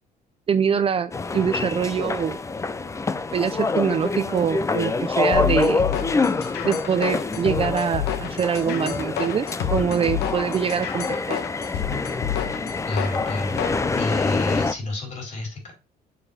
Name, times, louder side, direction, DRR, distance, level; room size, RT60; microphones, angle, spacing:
voice 1, 0.5-2.4 3.3-5.8 6.6-11.4, right 7 dB, 35° right, 11 dB, 0.5 m, -24 dB
sound 1, 1.1-14.7, left 3 dB, 15° left, 0.5 m, -26 dB
sound 2, 5.3-13.8, left 10 dB, 80° left, 1.1 m, -29 dB
voice 2, 12.8-13.6 14.0-15.7, left 2 dB, 45° left, 1 dB, 4.6 m, -29 dB
6.7 x 4.7 x 4.2 m, 0.30 s
cardioid pair, 110°, 17 cm